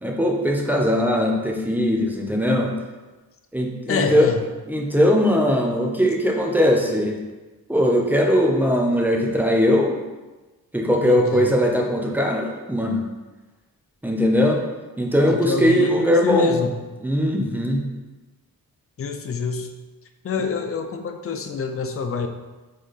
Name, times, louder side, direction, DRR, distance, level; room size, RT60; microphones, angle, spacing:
voice 1, 0.0-2.7 3.5-4.3 4.7-7.2 7.7-10.0 10.7-13.0 14.0-14.6 15.0-16.6 17.0-17.8, equal, 5° right, 1 dB, 0.6 m, -20 dB
voice 2, 3.9-4.4 11.0-11.5 15.3-16.7 19.0-19.7 20.2-22.3, left 5 dB, 40° left, 6 dB, 0.5 m, -26 dB
3.9 x 3.8 x 3.3 m, 1.2 s
cardioid pair, 95°, 36 cm